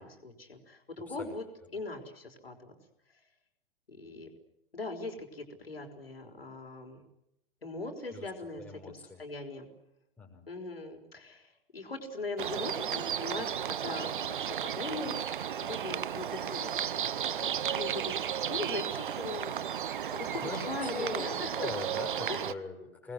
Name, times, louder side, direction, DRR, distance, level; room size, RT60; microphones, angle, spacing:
voice 1, 0.0-1.5 1.7-2.7 3.9-4.3 4.7-7.0 7.6-9.7 10.5-15.2 15.6-16.7 17.0-18.1 18.5-21.7 22.3-22.6, left 3 dB, 75° left, 3 dB, 5.5 m, -40 dB
voice 2, 1.0-1.7 8.1-8.3 8.6-9.2 10.2-10.5 20.4-21.3 21.6-23.1, left 3 dB, 5° left, 0 dB, 6.4 m, -41 dB
sound 1, 12.4-22.5, right 9 dB, 60° right, 1.0 m, -34 dB
25.5 x 21.0 x 9.6 m, 0.84 s
figure-of-eight pair, 110°, 30 cm